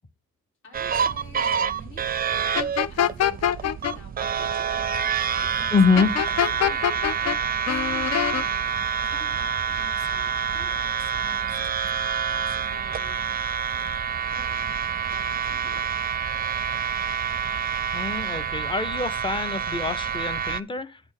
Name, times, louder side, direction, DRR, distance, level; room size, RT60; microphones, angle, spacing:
voice 1, 0.6-2.1 2.9-3.6 3.9-4.9 5.4-6.9 7.2-11.7 12.3-13.3 14.3-14.7 15.1-15.9, left 2 dB, 75° left, 4.2 m, -48 dB
sound 1, 0.7-20.6, right 7 dB, 30° right, 0.5 m, -27 dB
sound 2, 2.5-3.9 6.0-7.4 7.7-8.4, left 10 dB, 55° left, 0.6 m, -24 dB
voice 2, 5.7-6.1 17.9-21.0, left 4 dB, 15° left, 0.8 m, -24 dB
9.8 x 3.5 x 6.5 m
cardioid pair, 90°, 30 cm